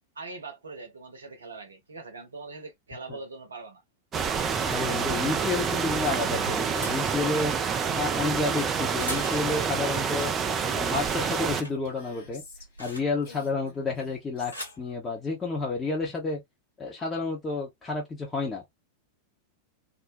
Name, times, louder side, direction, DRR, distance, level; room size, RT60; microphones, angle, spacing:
voice 1, 0.2-3.8, right 3 dB, 75° right, 0.7 m, -42 dB
sound 1, 4.1-11.6, right 6 dB, 25° right, 0.3 m, -28 dB
voice 2, 4.6-10.3 10.7-12.4 12.8-16.4 16.8-18.6, left 3 dB, 20° left, 0.7 m, -30 dB
sound 2, 6.1-9.8 10.2-10.6 10.9-13.4 14.2-14.9 15.8-16.1, equal, 85° left, 0.9 m, -43 dB
Female speech woman speaking, 9.7-12.9 13.2-14.8, left 4 dB, 60° left, 1.2 m, -51 dB
2.5 x 2.1 x 2.5 m
figure-of-eight pair, 90°, 0 cm